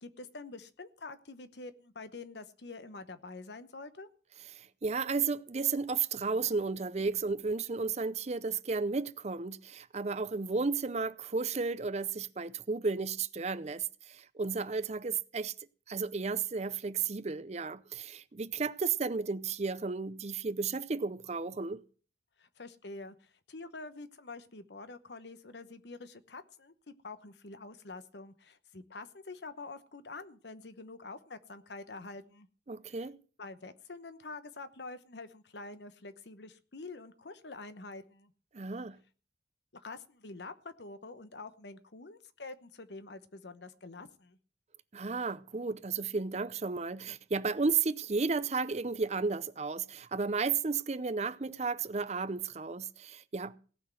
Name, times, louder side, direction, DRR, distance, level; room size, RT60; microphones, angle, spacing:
voice 1, 0.0-4.1 22.4-32.5 32.9-33.0 33.4-38.3 39.7-44.4, left 3 dB, 75° left, 1.0 m, -46 dB
voice 2, 4.5-15.5 15.9-21.8 32.7-33.2 38.5-39.0 44.9-53.6, right 4 dB, 40° right, 0.6 m, -33 dB
17.5 x 6.1 x 7.7 m
head